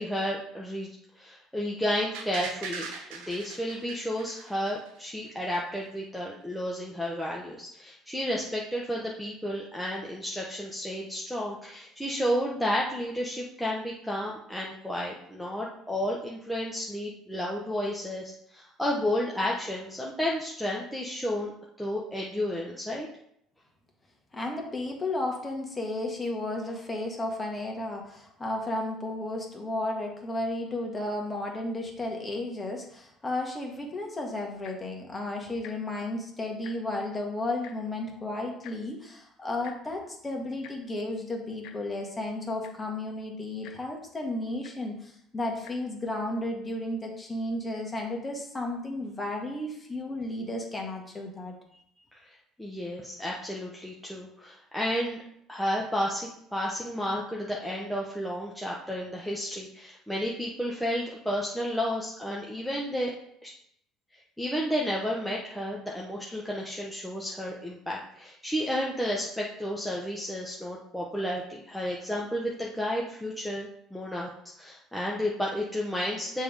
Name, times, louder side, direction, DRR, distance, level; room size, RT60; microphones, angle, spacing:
voice 1, 0.0-21.5 21.8-23.1 52.1-52.2 52.6-55.2 55.5-63.1 63.4-63.5 64.4-74.3 74.6-76.4, equal, ahead, -4 dB, 1.0 m, -32 dB
sound 1, 2.1-5.1 5.4-5.5, right 5 dB, 85° right, 1.0 m, -40 dB
voice 2, 24.3-51.5, left 2 dB, 20° left, 1 dB, 1.7 m, -33 dB
Tick-tock, 34.5-34.9 35.6-35.7 36.1-36.2 36.5-37.0 37.6-37.7 38.6-38.8 39.6-39.8 40.6-40.7 41.6-41.8 42.3-42.4 42.6-42.9 43.6-43.8 44.6-44.7 45.5-45.7 46.4-46.5, left 9 dB, 65° left, 0.8 m, -47 dB
6.8 x 3.6 x 4.9 m, 0.72 s
supercardioid pair, 90°, 0 cm